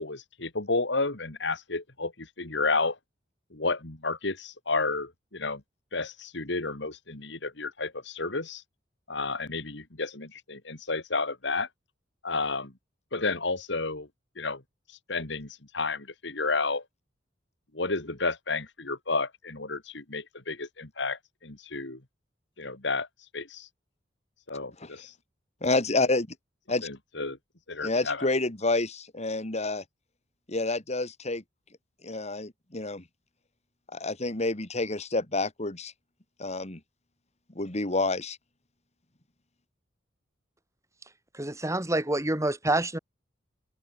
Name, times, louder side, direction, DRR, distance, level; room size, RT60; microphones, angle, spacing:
voice 1, 0.0-3.0 3.5-5.6 5.9-8.6 9.1-11.7 12.2-12.7 13.1-14.1 14.4-14.6 15.1-15.5 15.7-16.8 17.7-22.0 22.6-23.1 23.3-23.7 24.5-25.1 26.8-27.4 27.7-28.3, left 3 dB, 70° left, 2.8 m, -31 dB
voice 2, 25.6-26.3 26.7-26.9 27.8-29.8 30.5-31.4 32.0-33.0 33.9-35.9 36.4-36.8 37.5-38.4, left 2 dB, 35° left, 2.6 m, -28 dB
voice 3, 41.3-43.0, right 1 dB, 15° right, 2.9 m, -27 dB
head